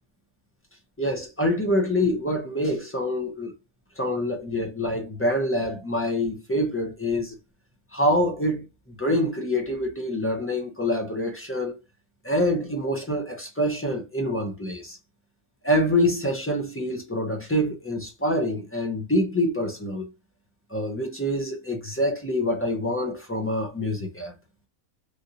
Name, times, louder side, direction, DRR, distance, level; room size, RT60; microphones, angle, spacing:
voice 1, 1.0-3.5 4.0-7.4 7.9-11.8 12.2-15.0 15.6-20.1 20.7-24.3, left 1 dB, 15° left, 0.4 m, -26 dB
3.2 x 2.6 x 2.7 m
omnidirectional pair, 1.5 m